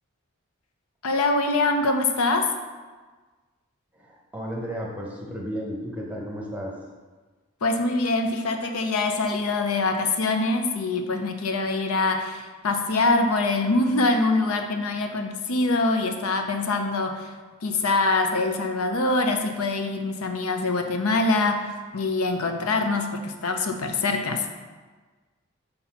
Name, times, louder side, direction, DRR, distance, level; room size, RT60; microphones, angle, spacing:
voice 1, 1.0-2.5 7.6-17.3 17.6-24.5, left 2 dB, 85° left, 5 dB, 0.6 m, -24 dB
voice 2, 3.9-6.7, equal, 5° right, -2 dB, 1.0 m, -33 dB
5.3 x 4.2 x 5.8 m, 1.3 s
head